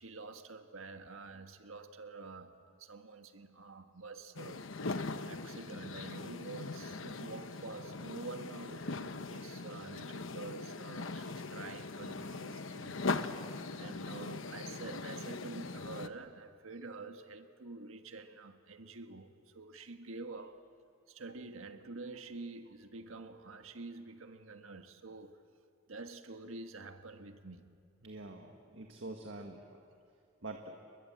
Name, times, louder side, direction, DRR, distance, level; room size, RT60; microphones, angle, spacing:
voice 1, 0.0-4.7 5.3-13.1 13.8-20.6 21.1-25.4 25.9-27.7, right 3 dB, 85° right, 1.6 m, -48 dB
sound 1, 4.4-16.1, left 3 dB, 70° left, 1.0 m, -40 dB
voice 2, 28.0-29.8 30.4-30.7, right 2 dB, 60° right, 1.7 m, -45 dB
30.0 x 21.5 x 7.6 m
head